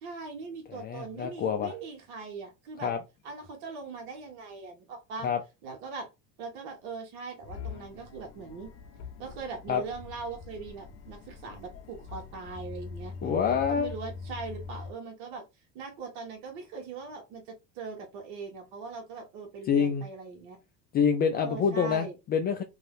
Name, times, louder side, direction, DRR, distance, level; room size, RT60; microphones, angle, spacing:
voice 1, 0.0-2.9 3.2-5.3 5.6-6.1 6.4-8.7 9.2-15.4 15.7-20.6 21.3-22.1, right 4 dB, 70° right, 1.1 m, -41 dB
voice 2, 0.7-1.7 2.8-3.0 5.2-5.4 9.7-9.8 13.2-13.9 19.7-20.0 20.9-22.6, left 6 dB, 30° left, 0.3 m, -27 dB
sound 1, 7.4-14.9, left 5 dB, 50° left, 0.7 m, -43 dB
2.6 x 2.3 x 3.4 m
supercardioid pair, 115°, 34 cm